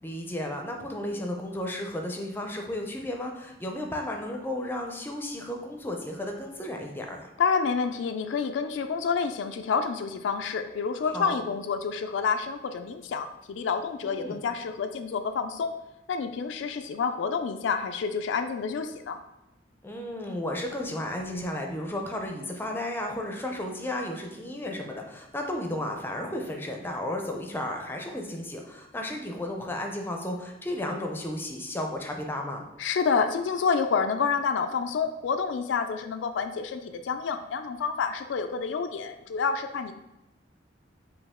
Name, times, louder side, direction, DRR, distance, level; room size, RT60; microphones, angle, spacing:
voice 1, 0.0-7.3 11.0-11.4 14.0-14.4 19.8-32.6, left 1 dB, 10° left, 2 dB, 0.5 m, -33 dB
voice 2, 7.4-15.7 16.1-19.2 32.8-39.9, left 5 dB, 75° left, 8 dB, 0.3 m, -28 dB
5.1 x 2.7 x 3.5 m, 0.96 s
head